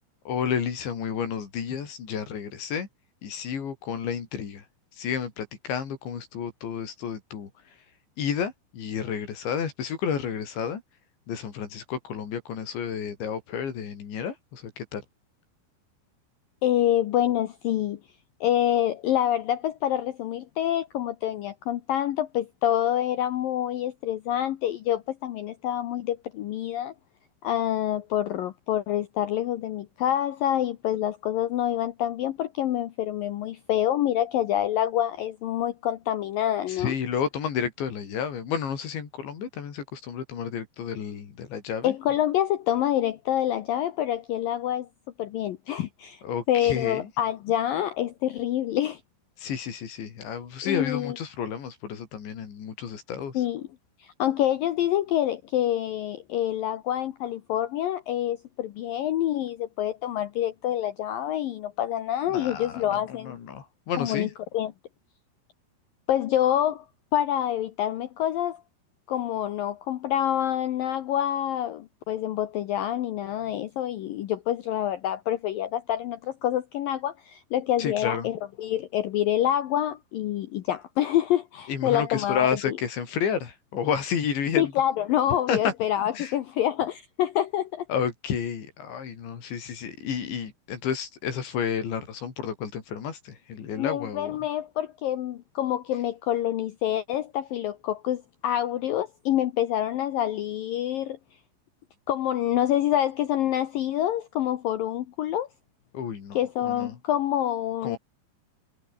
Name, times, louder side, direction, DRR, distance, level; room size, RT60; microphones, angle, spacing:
voice 1, 0.3-2.9 3.2-4.6 5.0-7.5 8.2-10.8 11.3-15.0 36.7-41.9 46.2-47.1 49.4-53.3 62.3-64.3 77.8-78.3 81.7-84.7 85.5-85.7 86.2-86.3 87.9-94.4 105.9-106.9 107.8-108.0, left 7 dB, 65° left, 6.0 m, -31 dB
voice 2, 16.6-18.0 18.4-26.9 27.4-36.9 41.8-44.9 45.2-46.2 46.5-49.0 50.6-51.2 53.3-53.7 54.0-63.4 64.0-64.3 64.5-64.7 66.1-66.9 67.1-68.6 69.1-82.8 84.6-87.9 93.8-101.2 102.1-105.5 106.3-108.0, left 11 dB, 85° left, 2.0 m, -27 dB
omnidirectional pair, 5.7 m